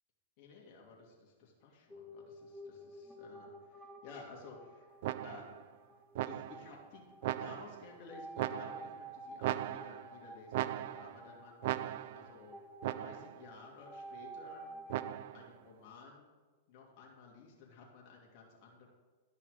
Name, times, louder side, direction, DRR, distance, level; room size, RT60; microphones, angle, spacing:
voice 1, 0.4-4.9 5.2-5.5 6.2-12.6 12.9-14.7 15.3-16.3 16.7-18.9, left 4 dB, 50° left, -2 dB, 2.5 m, -54 dB
sound 1, 1.9-15.1, right 1 dB, 5° right, 1.0 m, -51 dB
sound 2, 5.0-5.6 6.2-6.7 7.2-7.9 8.4-9.0 9.4-10.2 10.5-11.2 11.6-12.3 12.8-13.4 14.9-15.5, right 14 dB, 60° right, 0.3 m, -38 dB
11.5 x 5.5 x 5.0 m, 1.3 s
hypercardioid pair, 125°, 0 cm